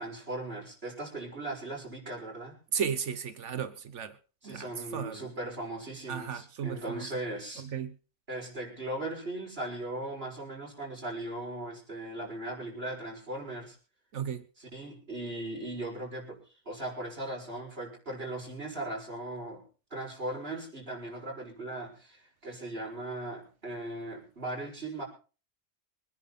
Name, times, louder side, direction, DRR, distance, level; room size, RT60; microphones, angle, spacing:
voice 1, 0.0-2.5 4.4-7.6 8.3-13.8 14.6-16.4 16.6-19.6 19.9-25.0, right 1 dB, 55° right, -1 dB, 6.7 m, -38 dB
voice 2, 2.7-4.2 4.4-5.3 6.1-7.1 7.6-7.9 14.1-14.4, right 7 dB, 80° right, 12 dB, 1.3 m, -35 dB
24.5 x 10.5 x 4.2 m, 0.37 s
omnidirectional pair, 1.2 m